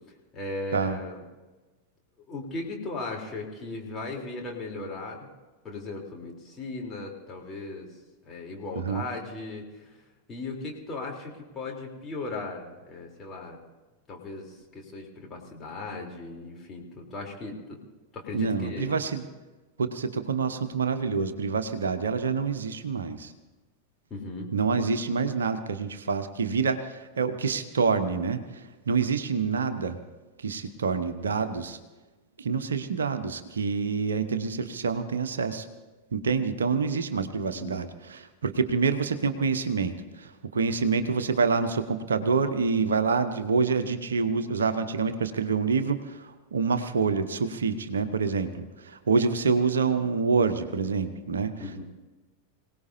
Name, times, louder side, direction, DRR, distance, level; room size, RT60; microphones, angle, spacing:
voice 1, 0.3-1.2 2.3-5.3 5.6-7.9 8.2-10.0 10.3-13.6 14.1-17.8 18.1-19.0 24.1-24.5 37.5-37.8 51.6-51.8, left 2 dB, 25° left, -1 dB, 3.5 m, -37 dB
voice 2, 18.3-19.2 19.8-23.3 24.5-30.0 30.4-31.8 32.4-35.7 36.1-51.5, right 5 dB, 70° right, 9 dB, 1.0 m, -27 dB
26.0 x 18.0 x 2.8 m, 1.2 s
figure-of-eight pair, 90°, 0 cm